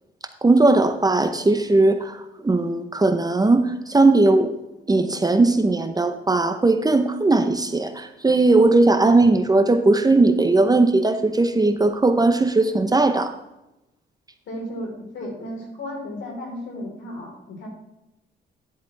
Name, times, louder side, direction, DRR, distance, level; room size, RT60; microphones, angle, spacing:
voice 1, 0.4-4.5 4.9-13.3, right 2 dB, 20° right, 8 dB, 0.8 m, -18 dB
voice 2, 14.5-17.7, left 1 dB, 70° left, 0 dB, 3.9 m, -34 dB
11.0 x 7.7 x 3.3 m, 0.92 s
cardioid pair, 90°, 20 cm